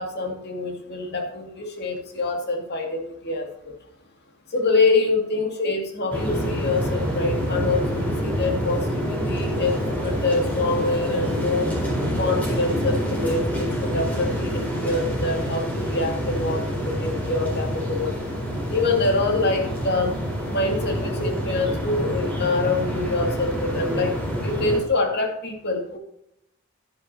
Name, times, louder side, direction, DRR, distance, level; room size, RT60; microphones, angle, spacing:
voice 1, 0.0-3.7 4.5-11.7 12.2-18.1 18.7-20.2 20.5-24.1 24.4-26.0, left 3 dB, 50° left, 3 dB, 2.2 m, -25 dB
sound 1, 6.1-24.8, equal, 10° left, 4.0 m, -27 dB
10.5 x 10.5 x 2.8 m, 0.78 s
head